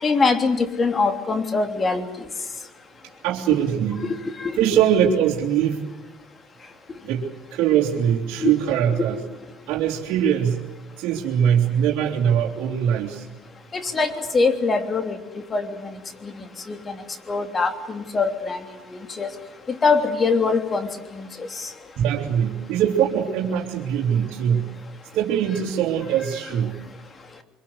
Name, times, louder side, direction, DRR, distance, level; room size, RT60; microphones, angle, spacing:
voice 1, 0.0-2.1 3.5-3.6 4.0-4.6 8.4-8.6 9.0-9.1 13.7-15.2 15.5-15.9 16.2-16.3 16.7-17.0 17.3-18.6 19.2-19.3 19.7-20.9 21.1-21.7, left 4 dB, 30° left, 7 dB, 3.3 m, -23 dB
voice 2, 3.2-4.0 4.6-5.8 7.0-9.2 9.7-10.7 11.0-13.3 22.0-24.7 25.1-26.8, right 9 dB, 70° right, -3 dB, 3.2 m, -22 dB
25.0 x 23.0 x 8.1 m, 1.1 s
supercardioid pair, 90°, 0 cm